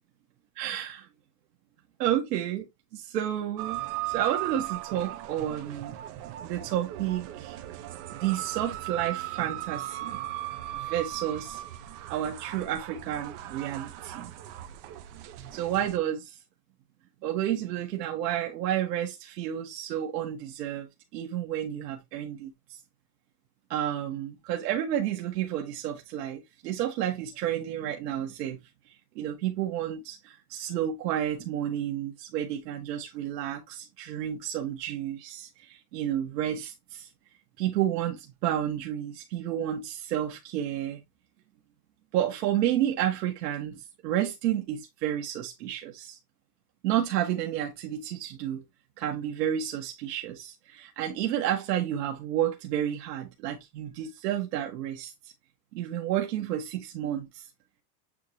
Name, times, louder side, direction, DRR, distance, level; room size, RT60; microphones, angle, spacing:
voice 1, 0.6-1.1 2.0-5.9 6.4-7.6 8.1-10.2 10.7-11.6 12.1-14.3 15.5-16.4 17.2-20.9 21.1-22.8 23.7-28.6 28.9-37.1 37.6-41.0 42.1-46.2 46.8-48.6 49.0-55.3 55.7-57.5, right 11 dB, 85° right, 1.7 m, -31 dB
sound 1, 3.6-16.0, right 15 dB, 50° right, 1.1 m, -38 dB
8.5 x 3.8 x 3.2 m
supercardioid pair, 160°, 47 cm